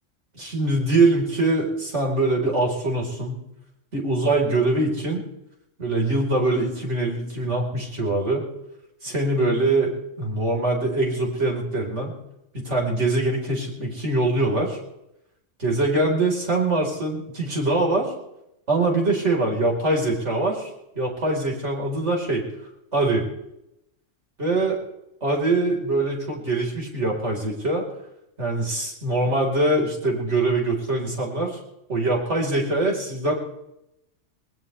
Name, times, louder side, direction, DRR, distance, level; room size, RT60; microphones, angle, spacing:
voice 1, 0.3-3.4 3.9-5.2 5.8-8.4 9.0-9.9 10.2-12.1 12.5-14.8 15.6-18.1 18.7-20.7 20.9-22.4 22.9-23.3 24.4-24.8 25.2-27.8 28.4-31.6 31.9-33.3, right 2 dB, 70° right, -1 dB, 4.6 m, -23 dB
21.5 x 19.5 x 3.3 m, 0.84 s
omnidirectional pair, 1.3 m